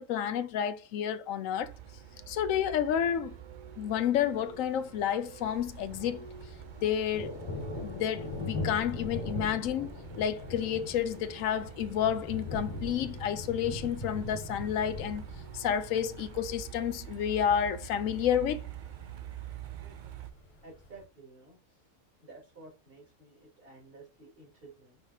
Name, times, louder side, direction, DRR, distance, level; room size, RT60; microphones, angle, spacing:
voice 1, 0.0-1.7 2.3-3.3 3.8-6.2 6.8-7.4 7.8-9.9 10.2-15.2 15.5-18.7, left 9 dB, 80° left, 1.0 m, -30 dB
Truck, 1.6-20.3, right 10 dB, 60° right, 0.5 m, -47 dB
Thunder, 5.5-21.0, left 1 dB, 60° left, 2.1 m, -41 dB
voice 2, 20.6-21.8 22.2-25.0, right 3 dB, 45° right, 2.7 m, -53 dB
5.5 x 3.5 x 2.7 m
omnidirectional pair, 1.4 m